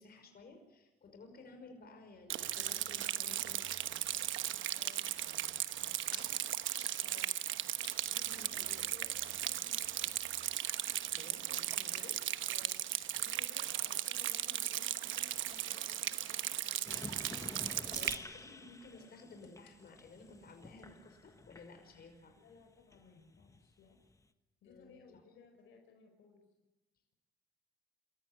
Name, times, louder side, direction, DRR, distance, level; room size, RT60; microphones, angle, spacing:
voice 1, 0.0-3.6 6.0-6.4 8.0-8.7 11.1-12.2 17.7-22.4 24.7-25.0, left 3 dB, 50° left, 5 dB, 5.5 m, -55 dB
Rain, 2.3-18.2, right 12 dB, 75° right, 1.1 m, -37 dB
voice 2, 4.7-5.2 7.0-7.3 8.3-10.1 12.5-12.8 13.2-16.9 17.3-18.1 18.4-18.6 18.9-19.2 22.4-24.0 24.6-26.4, left 5 dB, 85° left, 4 dB, 5.3 m, -60 dB
sound 1, 5.7-6.2 6.6-8.1 8.6-8.7 9.2-9.7 10.1-10.3 10.6-11.0 11.4-12.2 12.6-13.9 14.2-14.9 15.1-18.3 18.7-20.6 20.8-21.0 22.9-23.1, left 8 dB, 65° left, 4.0 m, -60 dB
sound 2, 16.9-22.2 22.5-24.2, left 2 dB, 15° left, 1.3 m, -50 dB
27.0 x 14.5 x 9.7 m, 1.0 s
cardioid pair, 90°, 20 cm